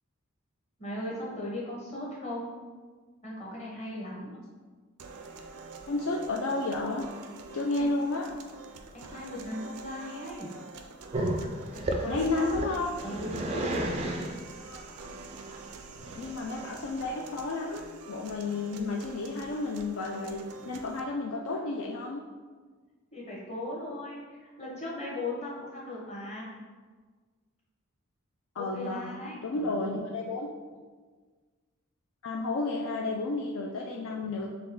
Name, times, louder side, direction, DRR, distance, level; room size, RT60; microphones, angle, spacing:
voice 1, 0.8-2.6 3.2-4.4 7.8-7.9 8.9-10.5 11.7-12.6 13.0-13.9 23.1-26.5 28.6-29.9 34.2-34.3, left 1 dB, 30° left, -5 dB, 1.1 m, -38 dB
sound 1, 5.0-21.0, right 4 dB, 90° right, 0.5 m, -47 dB
voice 2, 5.9-7.0 7.5-8.3 12.1-12.9 14.6-14.8 16.2-22.2 28.6-30.5 32.2-34.5, left 3 dB, 60° left, 0 dB, 0.4 m, -32 dB
Growling, 11.1-17.0, right 1 dB, 30° right, 0.3 m, -33 dB
4.2 x 3.2 x 3.7 m, 1.4 s
head